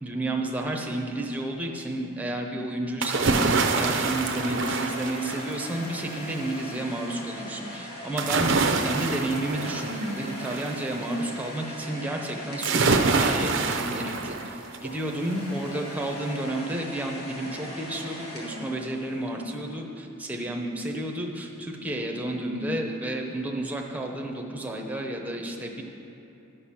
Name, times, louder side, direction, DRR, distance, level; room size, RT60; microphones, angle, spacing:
voice 1, 0.0-25.8, right 1 dB, 5° right, 1 dB, 0.8 m, -31 dB
sound 1, 3.0-5.8 8.2-10.8 12.6-14.9 15.3-15.4, right 4 dB, 60° right, 0.6 m, -26 dB
sound 2, 3.5-13.6 14.6-19.4, equal, 80° left, 2.0 m, -41 dB
11.0 x 6.6 x 5.8 m, 3.0 s
head